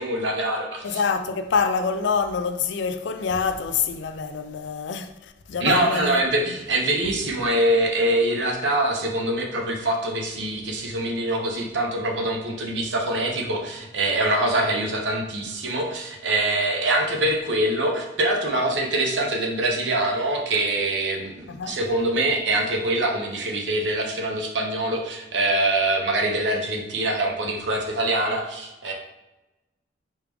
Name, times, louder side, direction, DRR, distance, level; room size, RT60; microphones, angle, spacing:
voice 1, 0.0-1.0 5.6-28.9, right 1 dB, 80° right, 0.9 m, -24 dB
voice 2, 0.8-6.2 21.5-21.8, left 5 dB, 75° left, 0.4 m, -26 dB
4.7 x 3.2 x 3.5 m
head